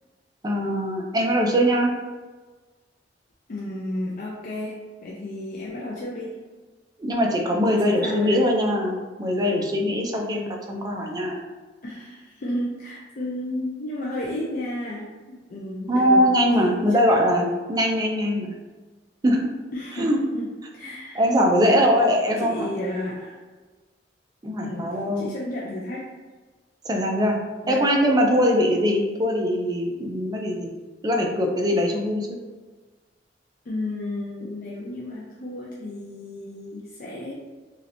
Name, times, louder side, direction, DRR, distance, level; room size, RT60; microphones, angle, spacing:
voice 1, 0.4-1.9 7.0-11.4 15.9-18.5 19.2-19.5 20.0-20.2 21.2-22.7 24.4-25.3 26.8-27.4 27.7-30.7 31.0-32.3, equal, 20° right, 1 dB, 0.4 m, -22 dB
voice 2, 3.5-6.4 7.7-8.5 11.8-16.2 16.6-17.0 19.7-20.5 20.7-21.2 21.6-21.9 22.4-23.4 24.6-26.1 27.6-27.9 33.7-37.4, left 1 dB, 50° left, -4 dB, 0.4 m, -32 dB
3.1 x 2.8 x 2.6 m, 1.3 s
head